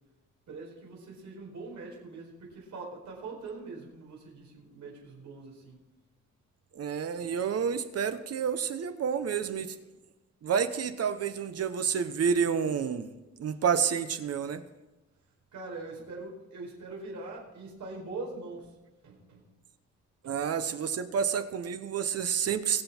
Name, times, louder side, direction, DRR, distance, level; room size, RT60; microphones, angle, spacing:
voice 1, 0.5-5.8 15.5-18.8 19.0-19.5 20.2-20.4, right 3 dB, 80° right, -2 dB, 4.8 m, -42 dB
voice 2, 6.7-9.8 10.4-14.6 20.2-22.8, right 7 dB, 55° right, 10 dB, 1.0 m, -29 dB
22.0 x 7.7 x 4.4 m, 1.1 s
wide cardioid pair, 155°, 29 cm